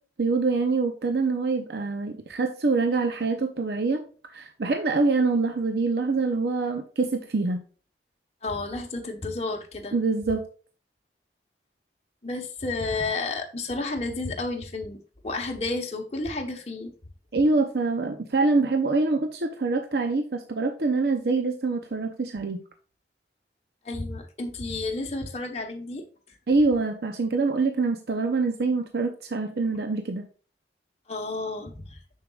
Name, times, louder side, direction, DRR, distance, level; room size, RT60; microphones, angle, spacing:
voice 1, 0.2-4.0 4.3-7.6 9.9-10.5 17.3-22.6 26.5-30.3, right 3 dB, 60° right, 5 dB, 0.6 m, -25 dB
voice 2, 8.4-9.9 12.2-15.0 15.2-16.9 23.8-26.0 31.1-32.0, left 3 dB, 35° left, 2 dB, 1.0 m, -31 dB
6.8 x 6.5 x 2.4 m, 0.38 s
head